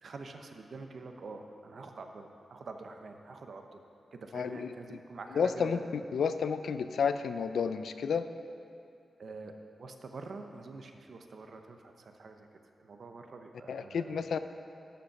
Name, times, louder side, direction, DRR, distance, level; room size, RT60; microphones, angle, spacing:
voice 1, 0.0-3.8 4.1-5.9 9.2-12.5 12.8-14.2, right 3 dB, 55° right, 5 dB, 0.7 m, -46 dB
voice 2, 4.3-5.0 5.3-8.3 13.7-14.4, left 6 dB, 85° left, 10 dB, 0.4 m, -31 dB
12.0 x 5.2 x 5.8 m, 2.6 s
wide cardioid pair, 140°, 0 cm